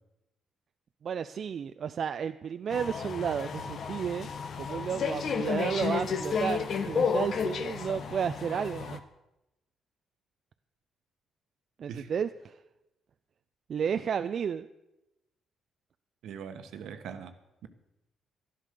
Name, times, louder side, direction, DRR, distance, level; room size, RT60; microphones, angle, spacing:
voice 1, 1.0-4.3 4.6-9.0 11.8-12.5 13.7-14.7, right 7 dB, 55° right, 10 dB, 0.4 m, -32 dB
sound 1, 2.7-9.0, left 6 dB, 60° left, 1.2 m, -32 dB
voice 2, 16.2-17.3, right 7 dB, 80° right, 9 dB, 1.2 m, -41 dB
12.0 x 11.5 x 6.7 m, 0.92 s
cardioid pair, 90°, 0 cm